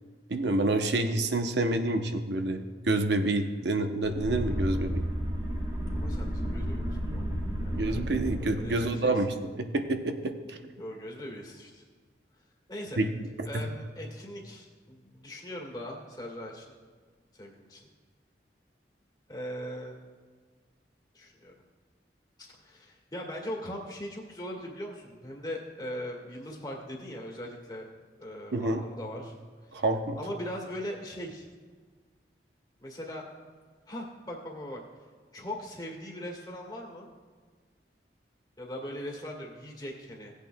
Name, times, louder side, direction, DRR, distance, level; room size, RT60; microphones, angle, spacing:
voice 1, 0.3-5.0 7.7-10.6 13.0-13.1 13.4-13.6 28.5-28.8 29.7-30.2, right 2 dB, 80° right, 6 dB, 0.7 m, -28 dB
sound 1, 4.0-8.9, equal, 30° right, 1.8 m, -32 dB
voice 2, 5.9-7.3 7.6-7.8 8.4-9.1 10.8-11.8 12.7-13.0 13.4-16.7 17.3-17.8 19.3-19.9 21.1-21.5 22.4-27.9 28.2-29.4 29.6-29.8 30.2-31.5 32.8-33.2 33.9-34.8 35.3-37.1 38.6-40.3, equal, 25° left, -2 dB, 1.6 m, -40 dB
17.5 x 8.3 x 2.2 m, 1.5 s
head